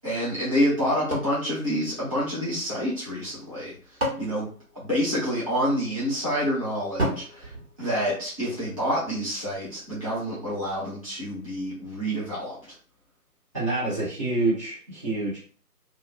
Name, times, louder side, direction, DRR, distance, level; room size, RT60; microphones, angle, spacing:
voice 1, 0.0-4.5 4.7-7.5 7.8-12.7, equal, 20° left, -10 dB, 0.7 m, -28 dB
sound 1, 1.1-2.6 3.5-5.5 7.0-8.6, right 1 dB, 40° right, 1.2 m, -34 dB
voice 2, 13.5-15.4, right 2 dB, 20° right, -10 dB, 1.2 m, -27 dB
2.8 x 2.3 x 2.4 m, 0.42 s
figure-of-eight pair, 150°, 47 cm